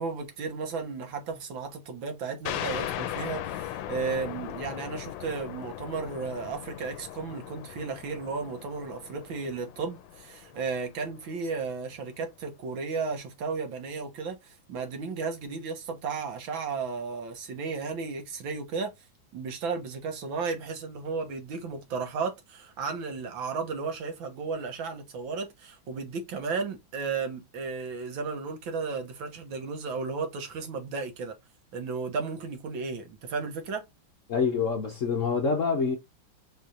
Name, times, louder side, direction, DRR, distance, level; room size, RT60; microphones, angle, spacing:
voice 1, 0.0-18.9 19.3-31.4 31.7-33.9, right 4 dB, 75° right, 2.0 m, -34 dB
sound 1, 2.5-11.7, left 12 dB, 80° left, 1.3 m, -38 dB
voice 2, 34.3-36.0, left 5 dB, 55° left, 0.9 m, -26 dB
5.0 x 4.2 x 2.4 m
omnidirectional pair, 2.1 m